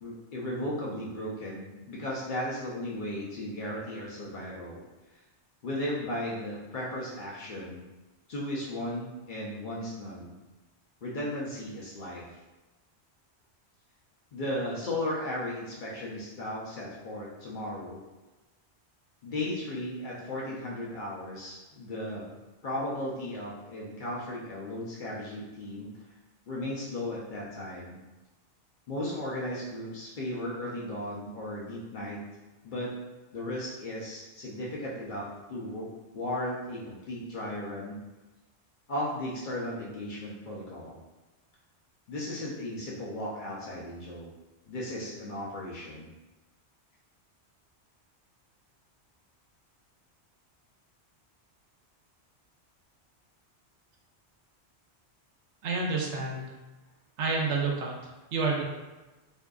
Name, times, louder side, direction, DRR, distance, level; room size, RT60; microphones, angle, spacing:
voice 1, 0.0-4.8 5.6-7.8 8.3-10.3 11.0-12.3 14.3-18.0 19.2-22.3 22.6-25.9 26.5-28.0 28.9-32.2 32.6-32.9 33.3-38.0 38.9-41.0 42.1-44.3 44.7-46.1, left 1 dB, 55° left, -5 dB, 0.6 m, -35 dB
voice 2, 55.6-56.4 57.2-57.9 58.3-58.6, right 4 dB, 85° right, 0 dB, 0.9 m, -28 dB
2.7 x 2.4 x 2.2 m, 1.1 s
omnidirectional pair, 1.2 m